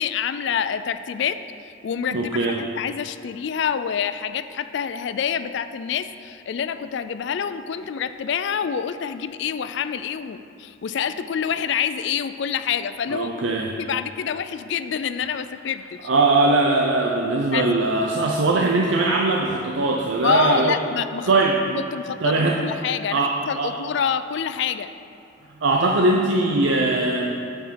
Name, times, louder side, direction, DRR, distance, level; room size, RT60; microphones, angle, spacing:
voice 1, 0.0-1.4 1.8-13.3 13.8-16.1 17.5-17.7 20.2-21.3 21.7-24.9, left 7 dB, 60° left, 12 dB, 0.3 m, -27 dB
voice 2, 2.1-2.6 13.1-13.7 16.0-20.8 21.3-21.8 22.2-22.6 23.1-23.7 25.6-27.3, right 2 dB, 70° right, 0 dB, 0.6 m, -20 dB
8.7 x 5.0 x 5.7 m, 2.9 s
head